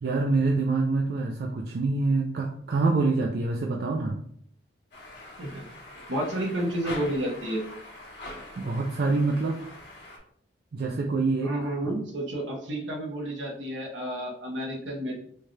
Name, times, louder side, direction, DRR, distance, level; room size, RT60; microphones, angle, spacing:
voice 1, 0.0-4.2 8.6-9.6 10.7-11.5, right 3 dB, 55° right, 0 dB, 0.4 m, -26 dB
sound 1, 4.9-10.2, left 1 dB, 65° left, 1.2 m, -43 dB
voice 2, 6.1-7.6 11.4-15.2, right 1 dB, 75° right, 0 dB, 1.0 m, -31 dB
4.4 x 2.4 x 3.2 m, 0.64 s
head